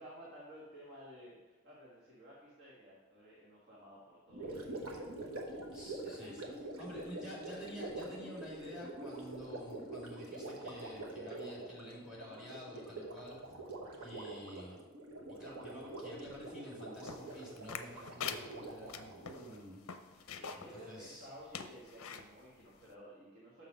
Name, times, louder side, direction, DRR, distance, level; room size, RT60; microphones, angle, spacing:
voice 1, 0.0-5.0 6.2-6.3 20.3-23.7, equal, 50° right, -6 dB, 1.6 m, -54 dB
Gurgling, 4.3-19.6, right 2 dB, 75° right, 1.1 m, -45 dB
voice 2, 5.7-6.4 6.8-13.4 14.0-14.8 15.4-21.3, equal, 5° right, -4 dB, 2.2 m, -50 dB
sound 1, 17.1-20.7 21.1-21.2 21.5-22.3 22.8-22.9, left 7 dB, 70° left, 0.5 m, -44 dB
6.3 x 5.8 x 5.2 m, 1.2 s
head